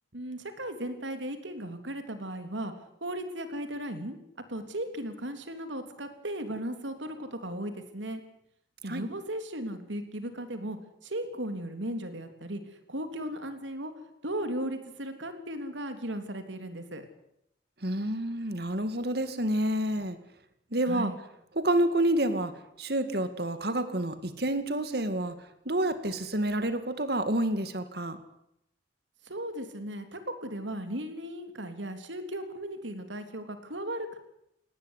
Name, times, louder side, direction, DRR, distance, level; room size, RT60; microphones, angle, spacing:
voice 1, 0.1-2.7 3.0-4.2 4.5-8.2 8.8-13.9 14.2-17.0 20.9-21.2 29.2-34.2, right 1 dB, 85° right, 8 dB, 3.4 m, -36 dB
voice 2, 17.8-20.2 20.7-21.1 21.6-25.4 25.7-28.2, right 1 dB, 55° right, 10 dB, 2.2 m, -28 dB
19.0 x 18.0 x 9.9 m, 0.78 s
head